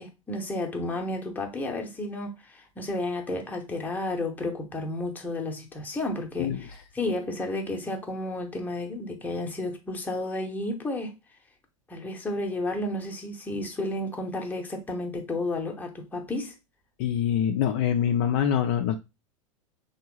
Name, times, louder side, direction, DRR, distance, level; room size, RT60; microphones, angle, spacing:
voice 1, 0.0-11.1 11.9-16.5, left 2 dB, 10° left, 0.8 m, -32 dB
voice 2, 17.0-19.0, left 9 dB, 45° left, 0.4 m, -24 dB
3.5 x 2.3 x 3.0 m
figure-of-eight pair, 90°, 18 cm